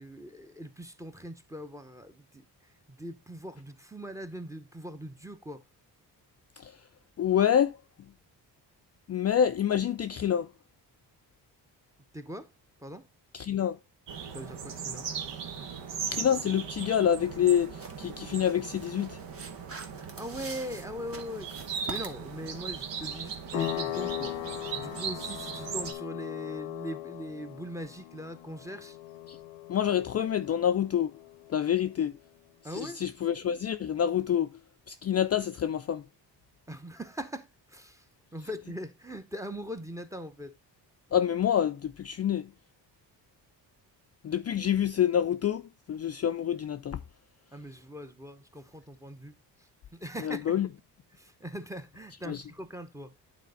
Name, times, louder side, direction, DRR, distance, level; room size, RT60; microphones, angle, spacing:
voice 1, 0.0-5.6 12.1-12.5 12.8-13.1 14.3-15.1 19.9-21.5 21.9-24.4 24.7-29.0 32.6-33.0 36.7-40.5 47.5-50.5 51.1-53.2, equal, 5° right, 0.8 m, -41 dB
voice 2, 7.2-7.8 9.1-10.5 13.3-13.8 16.1-19.2 29.3-29.4 29.7-31.1 31.5-32.1 32.8-34.5 34.9-36.0 41.1-42.5 44.2-47.0 50.2-50.7 52.3-52.4, left 9 dB, 40° left, 0.4 m, -27 dB
sound 1, 14.1-25.9, right 6 dB, 85° right, 1.4 m, -38 dB
sound 2, 17.8-22.9, right 3 dB, 35° right, 1.4 m, -46 dB
sound 3, 23.5-31.9, left 15 dB, 90° left, 0.7 m, -39 dB
9.2 x 4.2 x 3.9 m
cardioid pair, 110°, 42 cm